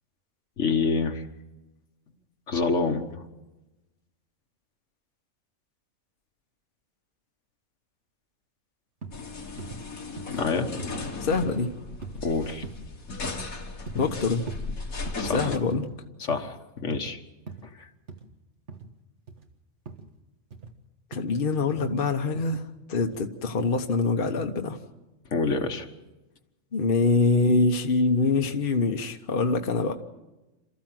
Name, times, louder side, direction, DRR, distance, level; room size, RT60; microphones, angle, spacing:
voice 1, 0.6-1.2 2.5-3.2 10.3-10.7 12.2-12.7 15.2-15.5 16.2-17.2 17.6-17.9 25.3-25.9, left 4 dB, 60° left, 6 dB, 1.6 m, -27 dB
sound 1, 9.0-9.2 9.6-9.8 10.2-10.4 10.8-11.0 11.4-11.6 12.0-12.2 12.6-12.9 13.2-13.5 13.9-14.1 14.5-14.6 15.1-15.3 15.7-15.9 16.2-16.5 16.9-17.1 17.5-17.7 18.1-18.2 18.7-18.9 19.3-19.4 19.9-20.1 20.5-20.7 21.1-21.3 21.7-21.9 22.3-22.5 23.0-23.2 23.6-23.8 24.2-24.4, right 4 dB, 60° right, 2.0 m, -41 dB
sound 2, 9.1-15.6, left 3 dB, 90° left, 2.3 m, -36 dB
voice 2, 11.2-11.7 14.0-14.5 15.3-15.9 21.1-22.6 22.9-24.8 26.7-29.9, left 3 dB, 45° left, 4 dB, 1.2 m, -24 dB
28.0 x 14.0 x 7.7 m, 1.1 s
omnidirectional pair, 1.4 m